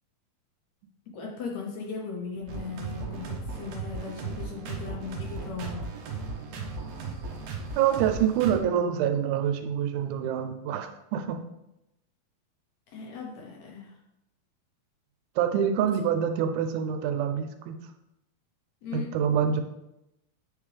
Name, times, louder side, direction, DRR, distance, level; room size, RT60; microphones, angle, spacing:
voice 1, 1.1-5.9 12.9-14.0 18.8-19.1, left 5 dB, 70° left, -1 dB, 1.8 m, -38 dB
sound 1, 2.5-8.6, right 4 dB, 70° right, 1.9 m, -36 dB
voice 2, 7.8-11.4 15.4-17.8 18.9-19.6, right 8 dB, 90° right, 7 dB, 2.5 m, -26 dB
9.4 x 3.6 x 3.3 m, 0.87 s
omnidirectional pair, 4.2 m